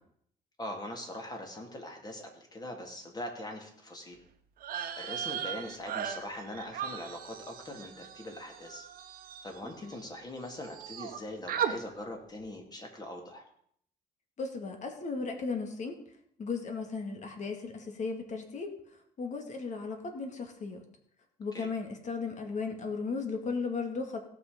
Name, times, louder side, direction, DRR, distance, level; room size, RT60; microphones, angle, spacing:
voice 1, 0.6-4.2 5.0-8.9 9.4-13.4 21.5-21.7, left 1 dB, 25° left, 2 dB, 2.7 m, -42 dB
sound 1, 4.6-10.2 10.5-11.2 11.5-11.7, right 8 dB, 60° right, 1.3 m, -38 dB
voice 2, 14.4-16.0 16.4-18.7 19.2-20.8 21.4-24.2, left 4 dB, 45° left, 5 dB, 2.1 m, -36 dB
17.0 x 6.2 x 5.2 m, 0.67 s
cardioid pair, 110°, 17 cm